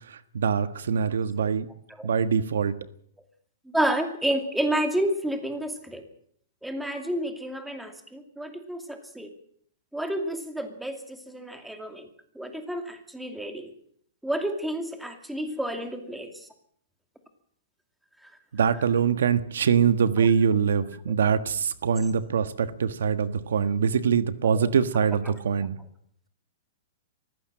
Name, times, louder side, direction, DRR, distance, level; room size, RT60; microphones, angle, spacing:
voice 1, 0.1-1.7 2.0-2.7 18.5-25.8, right 7 dB, 90° right, 12 dB, 1.4 m, -24 dB
voice 2, 3.7-6.0 6.6-9.3 9.9-12.1 12.3-13.7 14.2-16.5 18.2-18.3 20.2-20.3 24.5-24.7 25.3-25.4, right 1 dB, ahead, 6 dB, 2.5 m, -30 dB
23.0 x 15.5 x 7.6 m, 0.63 s
hypercardioid pair, 155°, 0 cm